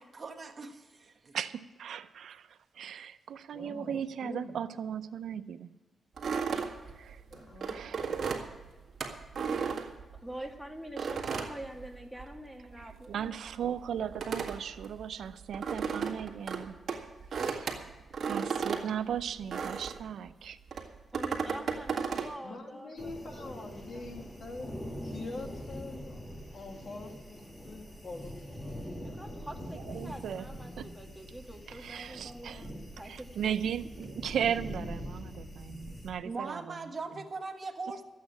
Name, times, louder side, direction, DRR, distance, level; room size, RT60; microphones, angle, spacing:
voice 1, 0.0-1.4 36.2-38.0, right 4 dB, 40° right, 4 dB, 1.4 m, -40 dB
voice 2, 1.3-5.7 6.8-7.2 7.7-8.3 12.8-16.8 17.4-17.9 18.2-20.6 29.7-30.5 30.8-30.9 31.7-32.6 33.4-36.8, right 8 dB, 80° right, 11 dB, 0.6 m, -37 dB
voice 3, 3.5-4.6 7.3-8.3 22.4-24.7 25.0-26.2 26.5-28.9 37.0-37.2, left 3 dB, 50° left, 2 dB, 2.3 m, -45 dB
sound 1, 6.2-10.5 11.0-12.5 12.7-20.1 20.7-22.3, right 6 dB, 55° right, 1.8 m, -35 dB
voice 4, 10.2-13.6 20.8-23.2 23.4-24.1 29.0-33.1, right 1 dB, ahead, 3 dB, 2.0 m, -46 dB
sound 2, 23.0-36.1, equal, 25° left, 3.0 m, -43 dB
13.5 x 8.6 x 8.4 m, 1.2 s
wide cardioid pair, 125°, 0 cm